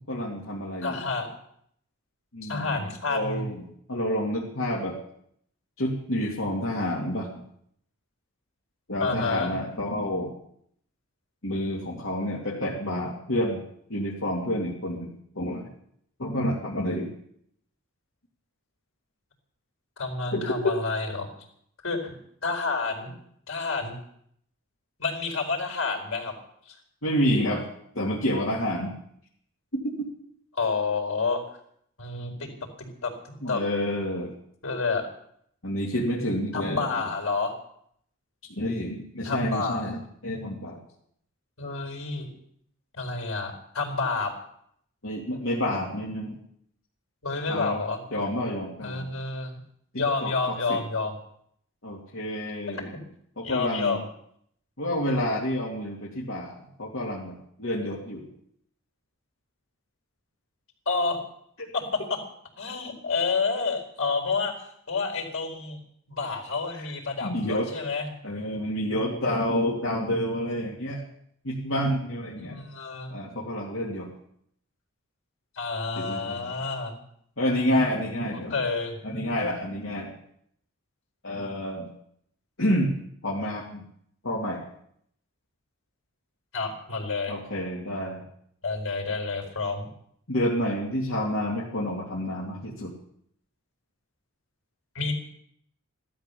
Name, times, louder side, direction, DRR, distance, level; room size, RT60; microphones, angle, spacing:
voice 1, 0.1-1.0 2.3-3.6 3.9-5.0 5.8-7.3 8.9-10.3 11.4-13.6 13.9-15.7 16.2-17.1 20.3-20.7 27.0-27.6 27.9-28.9 29.7-29.8 33.4-34.3 35.6-36.8 38.5-40.8 45.0-46.4 47.5-47.8 48.1-49.1 49.9-50.8 51.8-52.9 53.4-54.0 54.8-58.3 67.2-67.7 68.2-71.0 71.4-72.6 73.1-74.1 76.0-76.5 77.4-78.6 79.0-80.1 81.2-81.9 82.6-82.9 83.2-83.8 84.2-84.6 87.3-88.2 90.3-92.9, equal, 70° left, -5 dB, 2.7 m, -29 dB
voice 2, 0.8-1.3 2.4-3.5 9.0-9.6 20.0-21.3 21.8-22.1 22.4-23.1 23.5-24.0 25.0-26.3 26.7-26.8 30.5-31.4 32.0-32.5 32.8-33.6 34.6-35.1 36.5-37.5 39.2-39.9 41.6-42.3 42.9-44.3 47.2-48.0 48.8-49.6 49.9-51.2 52.7-52.8 53.4-54.1 60.9-61.2 61.7-62.0 62.6-65.8 66.1-68.1 72.4-73.2 75.6-77.0 78.5-79.0 86.5-87.4 88.6-89.9 94.9-95.1, left 4 dB, 85° left, 3 dB, 4.6 m, -29 dB
16.0 x 13.0 x 7.0 m, 0.69 s
head